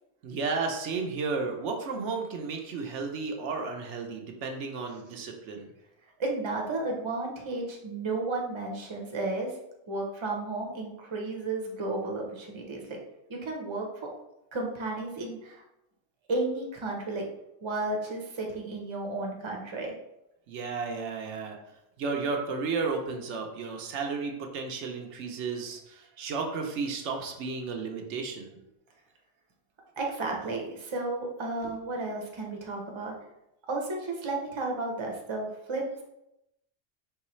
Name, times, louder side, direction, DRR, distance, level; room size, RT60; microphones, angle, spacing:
voice 1, 0.2-5.7 20.5-21.6 22.0-28.6 31.6-31.7, right 4 dB, 85° right, 3 dB, 1.0 m, -33 dB
voice 2, 6.2-9.5 9.9-13.0 13.3-13.9 14.5-15.6 16.3-17.2 17.6-19.9 30.0-33.1 33.7-35.8, right 2 dB, 30° right, 0 dB, 0.7 m, -33 dB
4.6 x 3.2 x 3.1 m, 0.86 s
omnidirectional pair, 1.2 m